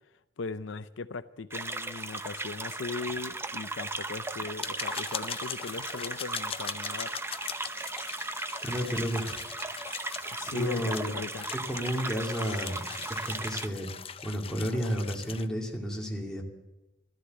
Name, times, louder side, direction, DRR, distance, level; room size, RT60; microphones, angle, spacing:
voice 1, 0.4-7.1 10.3-11.5, left 4 dB, 80° left, 12 dB, 0.6 m, -38 dB
sound 1, 1.5-13.7, right 2 dB, 15° right, 0.6 m, -37 dB
sound 2, 2.9-3.0 3.3-3.4 3.7-3.8 4.4-15.5, left 7 dB, 30° left, 0.5 m, -41 dB
voice 2, 8.6-9.4 10.5-11.1 11.6-13.9 14.2-16.4, equal, 5° left, -2 dB, 2.5 m, -32 dB
13.5 x 13.5 x 7.9 m, 0.99 s
head